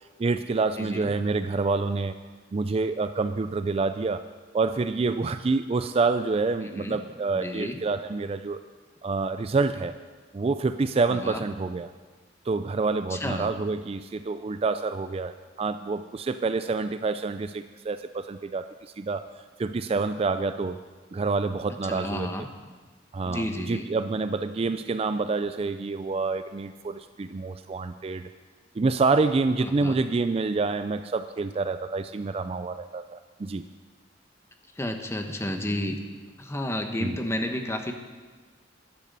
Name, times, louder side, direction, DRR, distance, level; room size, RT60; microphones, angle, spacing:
voice 1, 0.2-2.2 2.5-4.2 4.5-8.6 9.0-9.9 10.3-11.9 12.5-19.3 19.6-20.8 21.1-22.3 23.1-28.3 28.8-33.7 37.0-37.2, right 3 dB, 35° right, 11 dB, 0.4 m, -27 dB
voice 2, 0.8-1.1 6.6-7.0 7.3-7.8 11.1-11.4 13.1-13.5 21.8-22.5 23.2-23.9 29.6-30.0 34.8-36.0 36.4-37.9, left 1 dB, 15° left, 5 dB, 1.1 m, -31 dB
11.5 x 10.5 x 6.7 m, 1.4 s
head